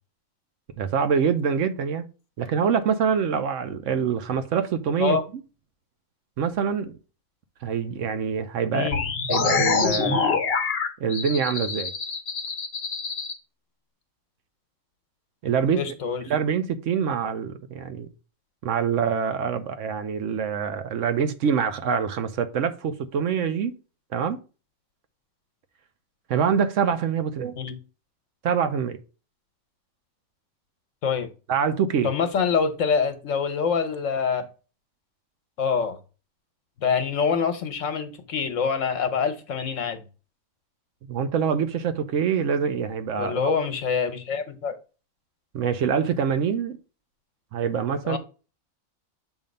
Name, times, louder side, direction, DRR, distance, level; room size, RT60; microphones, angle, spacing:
voice 1, 0.8-2.1 2.4-5.2 6.4-6.9 7.6-8.9 9.3-10.4 11.0-11.9 15.4-15.8 16.3-18.1 18.6-23.7 24.1-24.4 26.3-27.6 28.4-29.0 31.5-32.1 41.1-43.5 45.5-46.8 47.5-48.2, right 7 dB, 70° right, 1.0 m, -25 dB
voice 2, 8.7-9.1 15.8-16.2 27.6-27.8 31.0-31.3 32.0-34.5 35.6-36.0 36.8-40.0 43.2-44.7 48.0-48.2, left 6 dB, 70° left, 1.2 m, -25 dB
sound 1, 8.9-13.3, left 5 dB, 50° left, 1.0 m, -25 dB
7.1 x 2.7 x 5.1 m
omnidirectional pair, 1.4 m